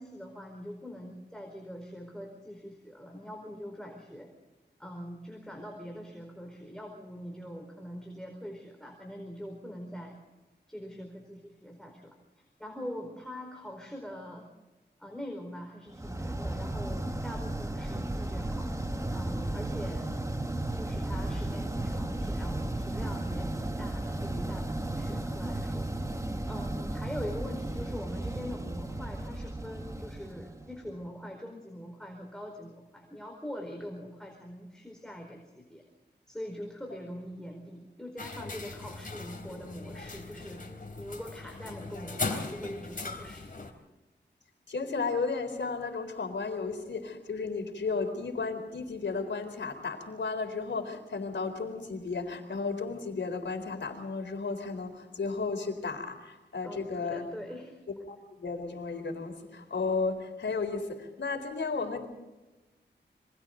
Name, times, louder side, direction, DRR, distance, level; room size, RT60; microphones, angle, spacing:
voice 1, 0.0-4.3 4.8-10.1 10.7-14.5 15.0-18.7 19.1-20.2 20.7-35.8 36.3-40.7 41.0-43.7 56.6-57.8, equal, 5° left, 1 dB, 4.6 m, -43 dB
sound 1, 16.0-31.0, right 1 dB, 15° right, 1.5 m, -34 dB
sound 2, 38.2-43.7, left 3 dB, 50° left, 3.7 m, -39 dB
voice 2, 44.7-57.2 58.1-62.1, left 4 dB, 85° left, 5 dB, 4.0 m, -34 dB
28.5 x 24.5 x 3.9 m, 1.1 s
wide cardioid pair, 85°, 18 cm